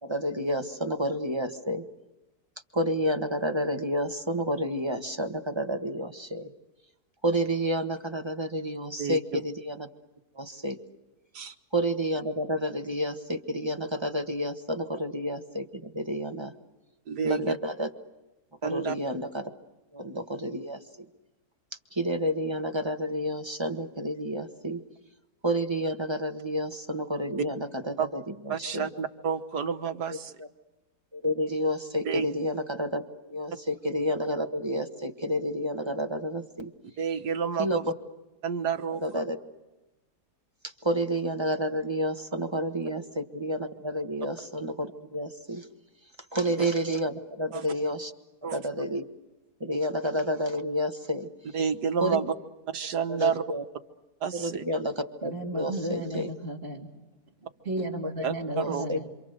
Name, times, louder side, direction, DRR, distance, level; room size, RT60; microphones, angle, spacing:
voice 1, 0.0-1.8 2.7-6.5 7.2-9.9 10.4-10.8 11.7-16.5 17.2-17.9 18.6-19.5 19.9-20.8 21.9-24.8 25.4-28.9 30.4-30.5 31.1-36.7 37.6-37.8 38.9-39.4 40.8-45.6 46.3-48.1 48.4-49.0 49.6-51.3 52.0-52.2 53.1-53.6 54.3-56.3 58.5-59.0, equal, 15° right, 5 dB, 1.4 m, -30 dB
voice 2, 9.0-9.4 11.3-11.5 17.1-17.6 18.6-19.0 28.0-28.1 28.5-30.3 32.1-32.3 37.0-37.9 38.4-39.2 46.6-46.7 47.5-47.7 48.4-48.6 51.5-52.3 52.7-53.4 54.2-54.6 58.2-58.9, right 7 dB, 80° right, 7 dB, 1.9 m, -30 dB
voice 3, 55.2-56.9 57.4-59.1, right 1 dB, 35° right, -5 dB, 3.4 m, -34 dB
28.0 x 27.0 x 6.7 m, 1.0 s
omnidirectional pair, 1.7 m